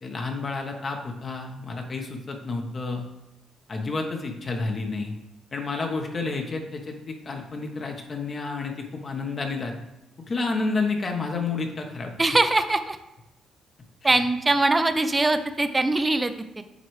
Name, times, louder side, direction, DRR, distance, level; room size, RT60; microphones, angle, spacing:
voice 1, 0.0-3.1 3.7-5.1 5.5-9.7 10.3-12.2 14.0-14.2, left 3 dB, 40° left, 3 dB, 1.0 m, -30 dB
voice 2, 12.2-13.0 14.0-16.6, right 2 dB, 20° right, 9 dB, 0.5 m, -22 dB
9.2 x 3.3 x 3.2 m, 0.94 s
cardioid pair, 90°, 0 cm